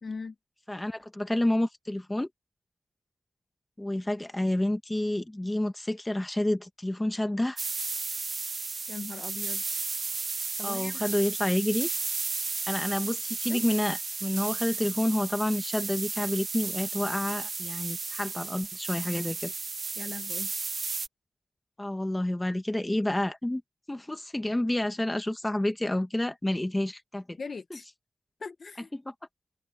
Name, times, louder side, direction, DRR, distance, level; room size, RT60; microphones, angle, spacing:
voice 1, 0.0-0.3 8.9-9.8 10.6-11.1 13.5-13.6 20.0-20.5 27.4-27.8 28.4-28.9, left 4 dB, 50° left, 0.9 m, -40 dB
voice 2, 0.7-2.3 3.8-7.6 10.6-11.9 12.7-19.5 21.8-23.6 23.9-27.4 27.7-27.8 28.9-29.1, left 1 dB, 10° left, 1.6 m, -29 dB
sound 1, 7.6-21.1, right 4 dB, 45° right, 0.4 m, -34 dB
wide cardioid pair, 160°, 0 cm